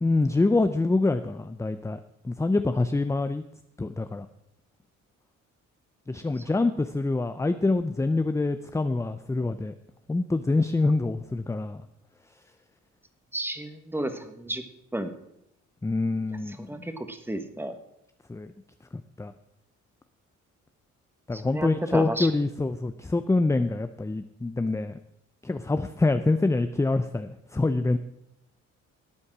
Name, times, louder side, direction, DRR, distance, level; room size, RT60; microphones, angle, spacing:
voice 1, 0.0-2.0 2.2-3.4 3.8-4.3 6.1-9.7 10.1-11.8 15.8-16.7 18.3-18.5 18.9-19.3 21.3-25.0 25.4-28.0, left 2 dB, 10° left, 10 dB, 0.5 m, -25 dB
voice 2, 13.3-14.6 14.9-15.1 16.5-17.7 21.3-22.3, right 1 dB, 5° right, 8 dB, 1.4 m, -32 dB
13.0 x 8.6 x 6.0 m, 0.80 s
cardioid pair, 90°, 30 cm